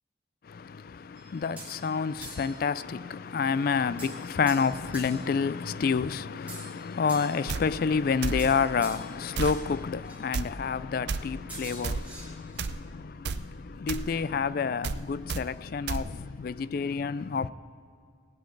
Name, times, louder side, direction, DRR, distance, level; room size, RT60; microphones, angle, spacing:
voice 1, 0.4-17.5, left 5 dB, 50° left, 0.3 m, -29 dB
sound 1, 1.2-1.8 2.2-2.6 4.0-5.3 6.5-7.5 8.4-9.1 9.4-9.6 10.0-10.2 11.5-12.7, right 2 dB, 10° right, 2.5 m, -45 dB
sound 2, 7.5-7.6 8.2-8.4 9.3-9.6 10.3-10.5 11.1-11.2 11.8-12.0 12.6-12.8 13.2-13.4 13.9-14.1 14.8-15.0 15.3-15.4 15.9-16.0, right 4 dB, 55° right, 0.4 m, -31 dB
17.5 x 6.4 x 8.4 m
head